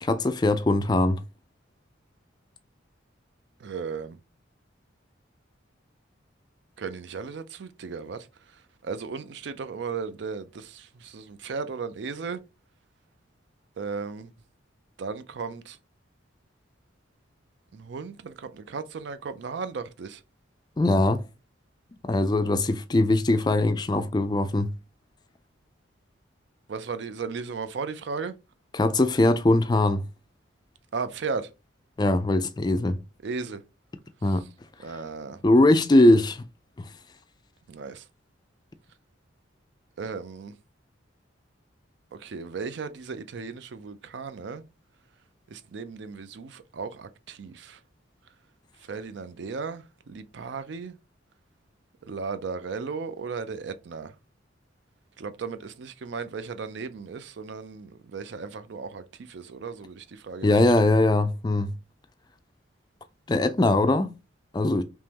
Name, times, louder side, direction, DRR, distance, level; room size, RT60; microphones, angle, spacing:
voice 1, 0.0-1.2 20.8-21.2 22.0-24.7 28.7-30.0 32.0-33.0 34.2-34.4 35.4-36.4 36.8-36.9 60.4-61.7 63.3-64.1 64.5-64.8, left 2 dB, 20° left, 0.3 m, -21 dB
voice 2, 3.6-4.2 6.8-8.3 8.8-12.4 13.8-14.3 15.0-15.8 17.7-20.2 26.7-28.3 30.9-31.5 33.2-33.6 34.3-34.4 34.8-35.4 37.7-38.0 40.0-40.5 42.2-44.6 45.5-47.8 48.9-51.0 52.0-54.1 55.2-60.5 60.8-60.9, right 5 dB, 60° right, 0.4 m, -35 dB
3.6 x 3.0 x 2.8 m
head